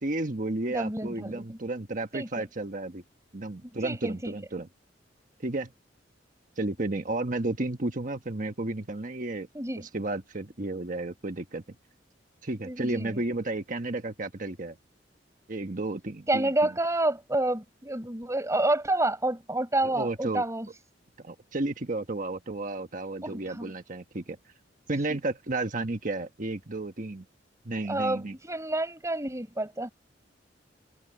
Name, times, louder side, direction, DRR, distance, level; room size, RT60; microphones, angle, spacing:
voice 1, 0.0-3.0 3.3-4.7 5.4-5.7 6.6-9.5 9.8-11.6 12.4-14.8 15.5-16.5 19.9-20.4 21.2-24.4 24.9-27.2 27.6-28.3, right 2 dB, 45° right, 1.3 m, -32 dB
voice 2, 0.7-1.6 2.1-2.3 3.8-4.4 9.5-9.9 12.6-13.2 16.3-20.7 23.2-23.7 27.9-29.9, right 2 dB, 15° right, 5.7 m, -29 dB
head